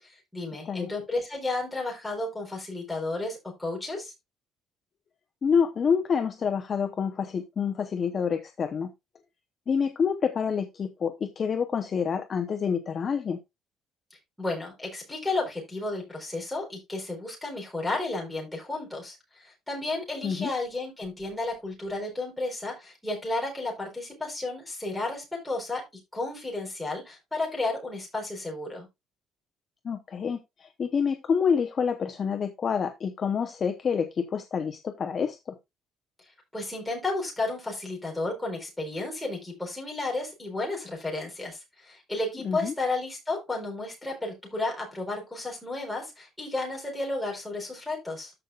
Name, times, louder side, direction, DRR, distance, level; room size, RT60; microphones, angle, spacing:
voice 1, 0.0-4.1 14.4-25.8 26.1-28.9 36.5-48.3, left 2 dB, 5° left, -1 dB, 4.0 m, -32 dB
voice 2, 5.4-8.9 9.7-13.4 20.2-20.5 29.8-35.6 42.4-42.7, left 6 dB, 30° left, 6 dB, 0.8 m, -27 dB
14.0 x 5.5 x 2.4 m, 0.21 s
cardioid pair, 170°, 0 cm